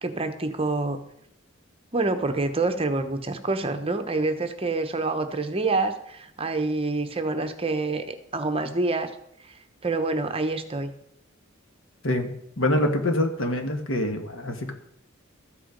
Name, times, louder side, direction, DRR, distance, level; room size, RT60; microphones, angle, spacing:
voice 1, 0.0-1.0 1.9-9.1 9.4-10.9, right 3 dB, 30° right, 8 dB, 1.0 m, -27 dB
voice 2, 12.0-14.7, left 1 dB, 70° left, 6 dB, 1.7 m, -25 dB
14.0 x 8.5 x 5.2 m, 0.74 s
head